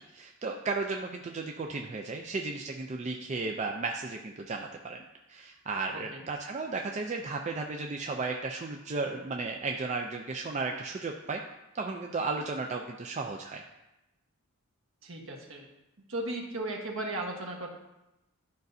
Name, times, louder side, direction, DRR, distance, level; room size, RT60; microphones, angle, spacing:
voice 1, 0.1-5.0 5.3-11.4 11.7-13.6, right 3 dB, 30° right, 2 dB, 0.4 m, -34 dB
voice 2, 15.0-15.7 16.1-17.7, right 1 dB, 65° right, 1 dB, 1.3 m, -36 dB
11.5 x 5.2 x 2.7 m, 0.95 s
head